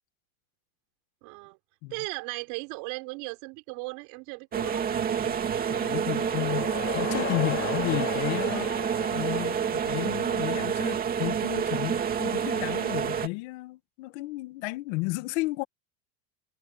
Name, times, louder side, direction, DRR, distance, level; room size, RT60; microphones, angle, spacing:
voice 1, 1.2-1.6 1.9-4.8, right 29 dB, 55° right, 6.7 m, -37 dB
sound 1, 4.5-13.3, right 7 dB, 20° right, 2.6 m, -28 dB
voice 2, 5.7-15.6, left 23 dB, 55° left, 1.8 m, -33 dB
sound 2, 5.7-10.6, left 11 dB, 30° left, 2.9 m, -38 dB
supercardioid pair, 155°, 40 cm